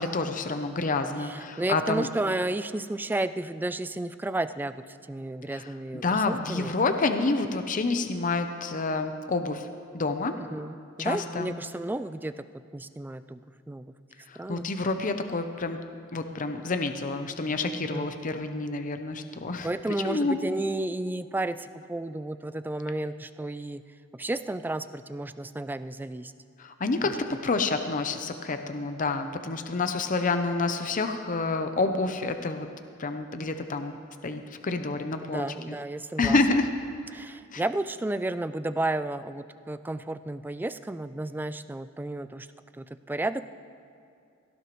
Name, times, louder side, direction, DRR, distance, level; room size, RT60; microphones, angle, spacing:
voice 1, 0.0-2.1 5.5-5.7 5.9-9.7 9.9-10.4 11.0-11.5 14.3-15.8 16.1-19.7 20.0-20.4 26.6-27.2 27.4-32.7 33.0-33.9 34.2-35.8 36.2-36.7 37.5-37.6, left 3 dB, 40° left, 7 dB, 0.7 m, -28 dB
voice 2, 1.2-6.7 10.4-13.4 13.7-13.9 14.4-14.7 17.8-18.1 19.6-23.8 24.1-26.3 27.0-27.2 35.3-36.4 37.1-42.5 42.7-43.4, right 2 dB, 10° right, 12 dB, 0.3 m, -32 dB
17.0 x 15.0 x 3.1 m, 2.5 s
head